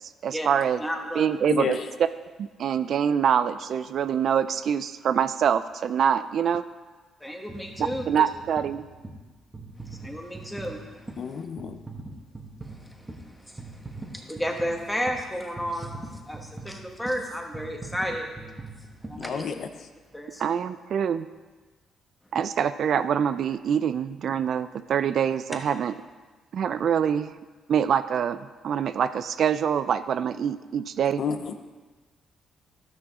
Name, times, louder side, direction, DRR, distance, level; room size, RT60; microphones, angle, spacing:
voice 1, 0.2-0.8 1.2-1.8 2.4-6.6 8.1-8.8 20.4-21.3 22.3-25.9 26.5-27.3 27.7-28.4 28.6-31.2, right 8 dB, 60° right, 12 dB, 0.3 m, -25 dB
voice 2, 0.8-1.3 7.2-8.2 9.8-11.4 12.6-18.3 19.1-19.4 20.1-20.4, equal, 5° left, 2 dB, 1.4 m, -33 dB
voice 3, 1.5-1.9 11.2-11.8 19.1-19.7 31.2-31.5, left 6 dB, 60° left, 8 dB, 0.6 m, -30 dB
sound 1, 7.5-19.9 20.5-20.6, right 2 dB, 20° right, 1.4 m, -42 dB
12.5 x 6.2 x 3.6 m, 1.3 s
cardioid pair, 90°, 0 cm